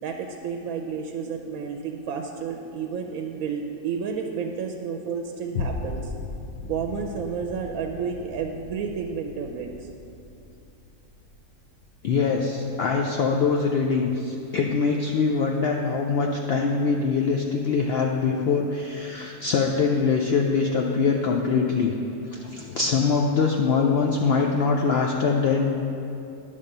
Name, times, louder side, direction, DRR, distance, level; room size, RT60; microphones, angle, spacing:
voice 1, 0.0-6.1 6.6-9.9, right 6 dB, 70° right, 3 dB, 0.9 m, -31 dB
sound 1, 5.6-14.1 14.6-14.7, left 3 dB, 60° left, 0.8 m, -38 dB
voice 2, 12.0-21.9 22.3-25.8, left 5 dB, 90° left, 1 dB, 0.5 m, -23 dB
9.9 x 3.5 x 6.6 m, 2.8 s
omnidirectional pair, 1.6 m